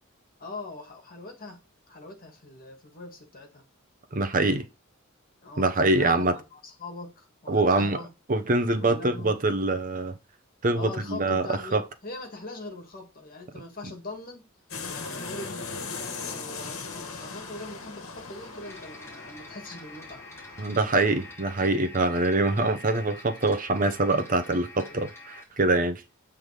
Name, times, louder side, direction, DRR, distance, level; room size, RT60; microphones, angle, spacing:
voice 1, 0.4-1.6 1.9-3.6 5.4-8.1 8.8-9.3 10.8-14.4 15.0-20.3 24.7-25.0, left 2 dB, 45° left, 1.8 m, -42 dB
voice 2, 4.1-4.7 5.6-6.3 7.5-8.0 8.3-10.2 10.6-11.8 20.6-26.0, right 2 dB, 40° right, 0.8 m, -24 dB
sound 1, 14.7-21.3, left 4 dB, 80° left, 1.3 m, -39 dB
sound 2, 18.6-25.4, left 2 dB, 10° left, 2.6 m, -46 dB
7.9 x 3.6 x 4.9 m
head